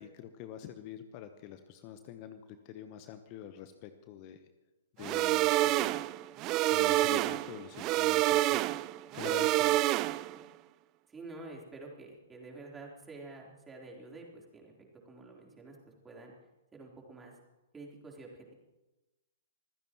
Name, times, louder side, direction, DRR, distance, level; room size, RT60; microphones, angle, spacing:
voice 1, 0.0-2.4 2.6-4.4 5.0-6.0 6.5-8.6 9.1-9.9, left 10 dB, 35° left, 9 dB, 1.0 m, -46 dB
sound 1, 5.0-10.4, right 16 dB, 30° right, 0.4 m, -28 dB
voice 2, 11.1-16.3 16.7-17.3 17.7-18.5, right 2 dB, 10° right, -2 dB, 3.8 m, -49 dB
25.5 x 15.5 x 3.1 m, 1.1 s
figure-of-eight pair, 115°, 0 cm